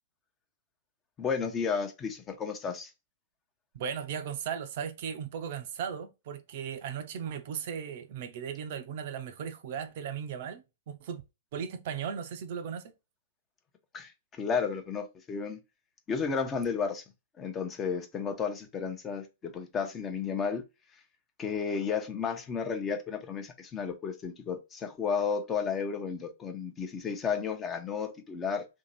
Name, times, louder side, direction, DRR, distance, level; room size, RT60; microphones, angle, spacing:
voice 1, 1.2-2.9 13.9-15.6 16.1-17.0 17.4-20.6 21.4-28.7, left 6 dB, 20° left, 0.8 m, -32 dB
voice 2, 3.7-11.2 11.5-12.8, right 7 dB, 55° right, 0.6 m, -37 dB
2.9 x 2.8 x 4.0 m
figure-of-eight pair, 110°, 0 cm